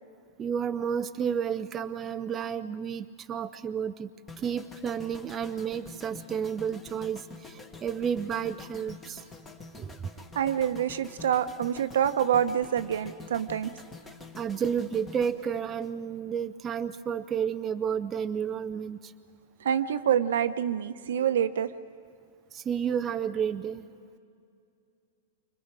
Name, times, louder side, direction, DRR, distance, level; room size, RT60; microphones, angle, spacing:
voice 1, 0.4-4.1 4.4-9.2 9.8-10.0 14.4-19.1 22.5-23.9, right 7 dB, 15° right, 8 dB, 0.5 m, -31 dB
sound 1, 4.3-16.5 16.7-17.0, left 3 dB, 10° left, 1.3 m, -47 dB
voice 2, 10.3-13.7 19.6-21.7, right 9 dB, 75° right, 10 dB, 1.0 m, -26 dB
29.0 x 25.0 x 4.9 m, 2.4 s
supercardioid pair, 165°, 0 cm